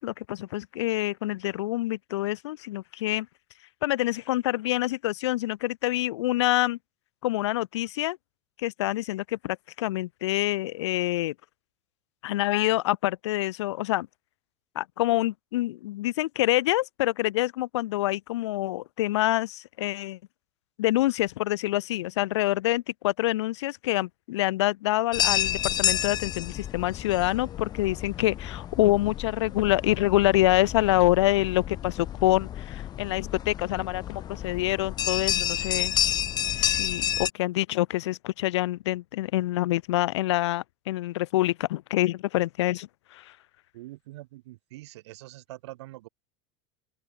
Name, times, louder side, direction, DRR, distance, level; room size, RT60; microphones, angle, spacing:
voice 1, 0.0-3.3 3.8-6.8 7.2-8.2 8.6-11.3 12.2-14.1 14.7-20.2 20.8-36.0 36.5-43.4, left 16 dB, 85° left, 0.9 m, -26 dB
sound 1, 25.1-37.3, left 11 dB, 30° left, 0.4 m, -30 dB
voice 2, 43.7-46.1, right 18 dB, 80° right, 3.3 m, -44 dB
open air
supercardioid pair, 115°, 14 cm